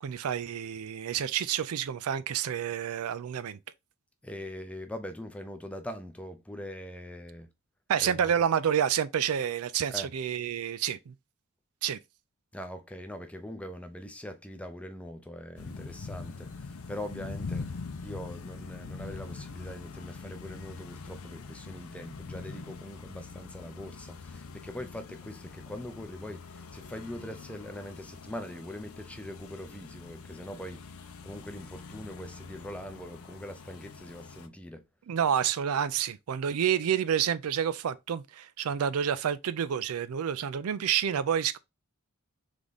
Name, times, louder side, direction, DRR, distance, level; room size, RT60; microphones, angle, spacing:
voice 1, 0.0-3.6 7.9-11.1 11.8-12.0 35.1-41.6, right 8 dB, 75° right, 0.4 m, -29 dB
voice 2, 4.2-7.5 8.0-8.3 9.9-10.1 12.5-17.7 18.0-34.9, left 1 dB, 5° left, 0.5 m, -42 dB
sound 1, 15.6-34.5, left 4 dB, 70° left, 0.6 m, -44 dB
3.6 x 3.4 x 3.9 m
head